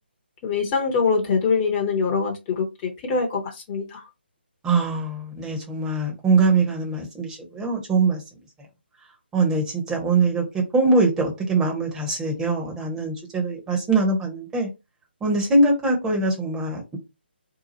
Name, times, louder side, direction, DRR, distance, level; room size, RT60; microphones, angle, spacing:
voice 1, 0.4-4.0, left 5 dB, 25° left, 0.7 m, -24 dB
voice 2, 4.6-8.2 9.3-14.7 15.2-17.0, right 3 dB, 10° right, 0.9 m, -22 dB
2.8 x 2.3 x 4.0 m
figure-of-eight pair, 145°, 6 cm